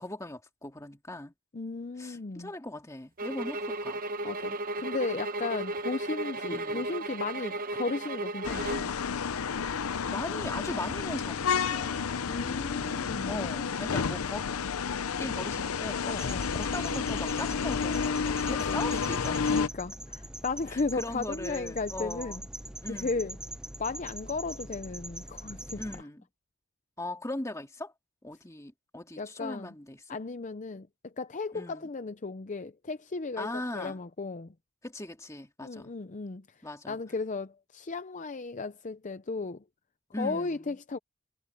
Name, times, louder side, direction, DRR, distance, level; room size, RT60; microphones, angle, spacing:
voice 1, 0.0-1.3 2.0-4.0 6.5-6.9 10.1-12.2 13.3-14.5 15.2-16.2 16.5-19.6 20.7-22.5 22.8-23.2 25.8-26.3 27.0-27.9 28.2-30.2 31.5-31.9 33.4-34.0 34.8-35.9 36.6-37.0 40.1-40.8, left 1 dB, 15° left, 2.1 m, -39 dB
voice 2, 1.5-2.5 4.2-8.8 12.3-13.4 16.0-16.5 18.4-18.8 19.1-22.4 22.9-23.4 23.8-25.8 29.2-29.7 30.1-34.5 35.6-36.5 36.9-39.6 40.2-41.0, left 3 dB, 35° left, 0.6 m, -35 dB
sound 1, 3.2-8.9, right 2 dB, 40° right, 0.9 m, -34 dB
sound 2, 8.4-19.7, left 6 dB, 80° left, 0.6 m, -31 dB
sound 3, 16.1-26.0, right 1 dB, 5° right, 0.6 m, -43 dB
head